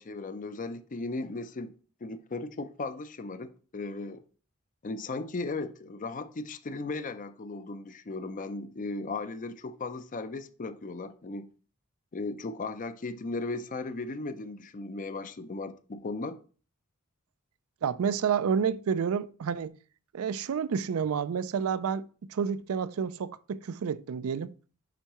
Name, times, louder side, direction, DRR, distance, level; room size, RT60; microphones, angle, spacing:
voice 1, 0.0-1.7 2.0-4.2 4.8-11.5 12.1-16.4, left 3 dB, 40° left, 0.5 m, -36 dB
voice 2, 17.8-19.8 20.1-22.0 22.3-24.5, right 7 dB, 80° right, 0.4 m, -29 dB
10.0 x 4.5 x 3.0 m
head